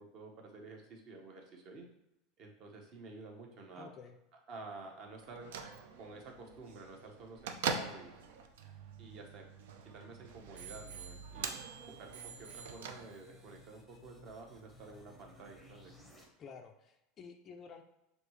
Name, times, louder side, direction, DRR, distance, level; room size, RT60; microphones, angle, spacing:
voice 1, 0.0-1.9 2.4-3.9 4.5-5.5 6.0-8.1 9.0-9.5 9.9-11.6 11.8-16.0, right 3 dB, 40° right, 1 dB, 0.8 m, -50 dB
voice 2, 3.8-4.2 16.4-17.8, left 6 dB, 25° left, 5 dB, 0.3 m, -51 dB
Bell / Microwave oven, 5.2-13.5, right 6 dB, 90° right, 0.5 m, -44 dB
Bicycle bell, 8.3-9.9 10.6-11.7 12.1-13.4 14.1-14.2, right 7 dB, 70° right, 0.9 m, -53 dB
sound 1, 10.0-16.2, left 2 dB, ahead, 0.7 m, -60 dB
6.5 x 2.7 x 3.1 m, 0.90 s
supercardioid pair, 160°, 0 cm